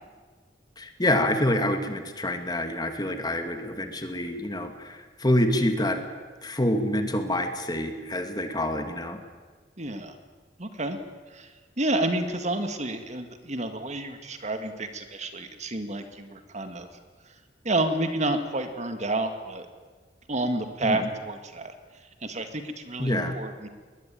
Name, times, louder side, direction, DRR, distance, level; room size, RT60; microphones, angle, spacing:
voice 1, 0.8-6.0 6.4-9.2 20.8-21.1 23.0-23.3, left 1 dB, 25° left, 6 dB, 2.3 m, -27 dB
voice 2, 9.8-10.2 10.6-11.0 11.3-11.5 11.8-16.9 17.6-19.7 20.3-21.7 22.2-23.7, right 2 dB, 40° right, 7 dB, 2.0 m, -30 dB
22.0 x 20.0 x 9.2 m, 1.4 s
head